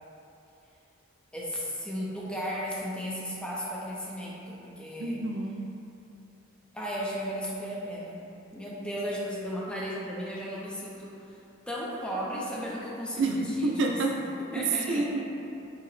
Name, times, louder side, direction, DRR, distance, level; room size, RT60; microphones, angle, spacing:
voice 1, 1.3-5.2 6.7-8.3 8.5-15.2, equal, 5° left, -6 dB, 0.4 m, -35 dB
voice 2, 5.0-5.5 13.2-14.2 14.6-15.2, right 3 dB, 60° right, 1 dB, 0.3 m, -28 dB
4.6 x 2.0 x 3.1 m, 2.8 s
head